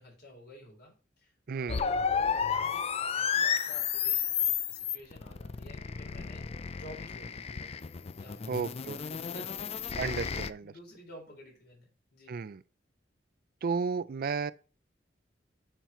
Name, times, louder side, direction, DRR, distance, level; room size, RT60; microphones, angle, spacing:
voice 1, 0.0-6.4 6.8-7.9 8.2-10.0 10.3-12.4, left 1 dB, 60° left, 4.1 m, -52 dB
voice 2, 1.5-1.8 8.5-9.2 10.0-10.7 12.3-12.6 13.6-14.5, right 5 dB, 55° right, 0.4 m, -33 dB
sound 1, 1.7-10.5, left 7 dB, 35° left, 0.4 m, -32 dB
7.0 x 5.9 x 4.3 m
head